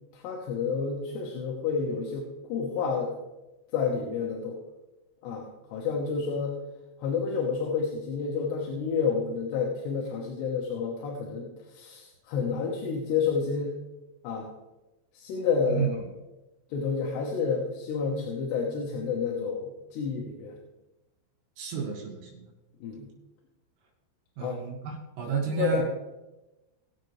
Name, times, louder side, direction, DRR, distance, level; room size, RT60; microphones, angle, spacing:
voice 1, 0.1-3.1 3.7-4.6 5.2-6.6 7.0-13.7 14.2-14.5 15.1-16.1 16.7-20.6 22.8-23.1 24.4-24.6 25.5-25.8, left 5 dB, 70° left, -1 dB, 3.1 m, -30 dB
voice 2, 15.7-16.1 21.6-22.5 24.4-25.8, right 7 dB, 85° right, -1 dB, 4.7 m, -31 dB
20.5 x 7.6 x 3.3 m, 1.0 s
omnidirectional pair, 5.7 m